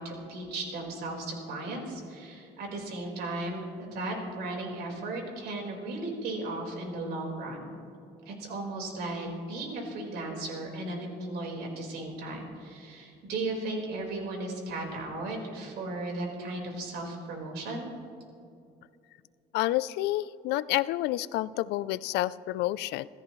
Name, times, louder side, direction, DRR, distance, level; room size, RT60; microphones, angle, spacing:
voice 1, 0.0-7.8 8.3-17.9, right 2 dB, 75° right, 0 dB, 4.5 m, -36 dB
voice 2, 19.5-23.1, left 16 dB, 85° left, 18 dB, 0.4 m, -29 dB
27.5 x 14.0 x 3.1 m, 2.5 s
cardioid pair, 110°, 17 cm